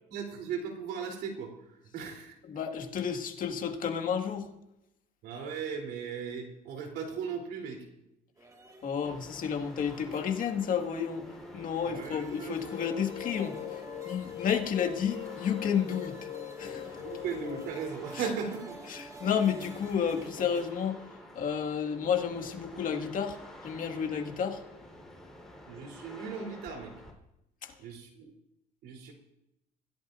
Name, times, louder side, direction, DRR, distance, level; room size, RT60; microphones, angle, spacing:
voice 1, 0.1-1.5 1.9-2.4 5.2-7.8 11.9-12.6 17.0-18.9 25.7-26.9 27.8-28.3 28.8-29.1, right 6 dB, 85° right, 3.6 m, -37 dB
voice 2, 2.4-4.5 8.8-11.3 11.5-16.2 16.6-17.0 18.9-23.4 23.6-24.6 27.6-27.7, left 7 dB, 55° left, 1.9 m, -31 dB
sound 1, 8.4-20.7, right 2 dB, 20° right, 2.0 m, -50 dB
sound 2, 9.0-27.1, left 1 dB, 5° left, 4.2 m, -50 dB
sound 3, 12.6-17.7, left 14 dB, 80° left, 1.8 m, -41 dB
25.5 x 15.5 x 2.6 m
cardioid pair, 110°, 17 cm